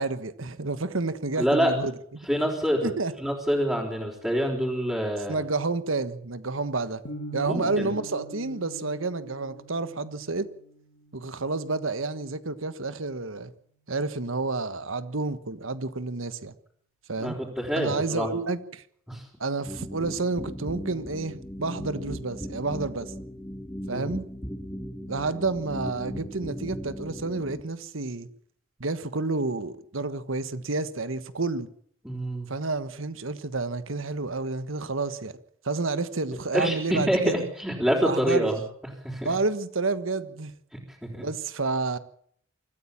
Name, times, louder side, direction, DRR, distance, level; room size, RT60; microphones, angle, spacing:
voice 1, 0.0-2.3 2.8-3.1 5.3-7.0 7.3-10.5 11.1-13.5 13.9-16.5 17.1-17.4 17.8-18.8 19.4-23.1 23.9-24.2 25.1-28.3 28.8-31.7 32.5-35.3 35.6-37.4 38.0-38.5 39.2-40.5 41.2-42.0, right 3 dB, 75° right, 13 dB, 1.4 m, -30 dB
voice 2, 1.4-1.7 2.3-2.9 3.2-5.4 7.5-7.9 17.2-18.3 19.1-19.3 23.9-24.1 32.0-32.5 36.5-38.6 39.0-39.3 41.0-41.3, equal, 5° right, -5 dB, 4.2 m, -26 dB
sound 1, 7.0-13.1, right 1 dB, 65° left, 2.4 m, -43 dB
sound 2, 19.7-27.6, equal, 15° left, 2.1 m, -38 dB
25.0 x 14.5 x 7.4 m, 0.64 s
head